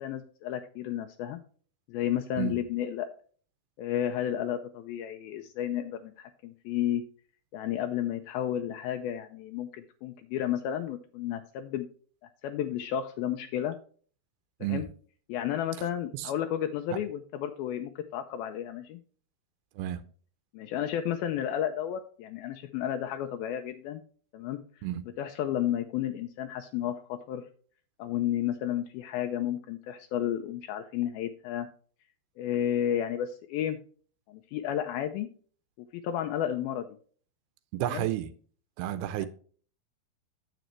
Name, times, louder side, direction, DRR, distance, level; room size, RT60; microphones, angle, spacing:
voice 1, 0.0-1.4 1.9-3.1 3.8-7.0 7.5-11.9 12.4-13.8 14.7-14.9 15.3-19.0 20.5-24.0 24.3-24.6 25.2-27.4 28.0-31.7 32.4-33.8 34.3-35.3 35.9-36.9 37.8-38.1 39.2-39.3, left 10 dB, 80° left, 2.4 m, -32 dB
voice 2, 37.7-38.3 38.8-39.3, right 13 dB, 90° right, 2.6 m, -31 dB
9.2 x 7.8 x 3.1 m
omnidirectional pair, 4.4 m